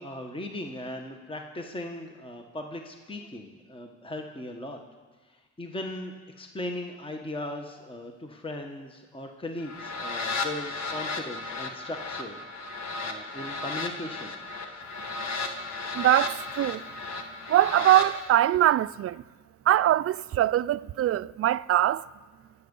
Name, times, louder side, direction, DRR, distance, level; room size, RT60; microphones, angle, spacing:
voice 1, 0.0-4.8 5.6-12.4 13.0-14.3, left 1 dB, 15° left, 1.2 m, -38 dB
sound 1, 9.6-18.1, left 3 dB, 60° left, 1.9 m, -34 dB
voice 2, 15.9-16.8 17.5-19.2 19.7-22.1, right 13 dB, 50° right, 0.4 m, -22 dB
24.0 x 8.4 x 5.4 m
cardioid pair, 90°, 30 cm